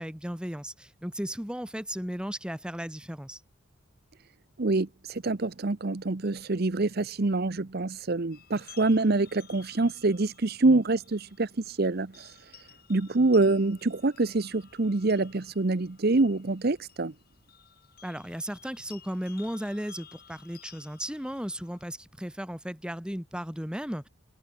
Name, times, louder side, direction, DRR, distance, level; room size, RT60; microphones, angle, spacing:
voice 1, 0.0-3.4 18.0-24.1, equal, 5° right, 1.6 m, -35 dB
voice 2, 4.6-12.4 12.9-17.1, right 2 dB, 50° right, 0.8 m, -26 dB
sound 1, 8.3-22.0, left 9 dB, 45° left, 5.6 m, -55 dB
head